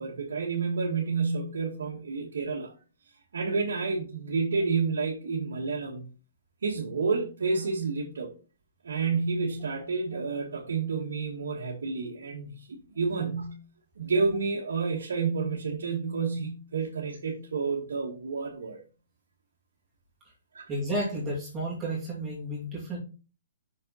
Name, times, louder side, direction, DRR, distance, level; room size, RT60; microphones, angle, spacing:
voice 1, 0.0-2.7 3.3-6.1 6.6-8.3 8.8-13.6 14.0-18.8 20.5-20.7, right 4 dB, 85° right, 1.7 m, -30 dB
voice 2, 20.7-23.0, right 1 dB, 15° right, 2.4 m, -32 dB
6.3 x 4.4 x 4.1 m
hypercardioid pair, 145°, 0 cm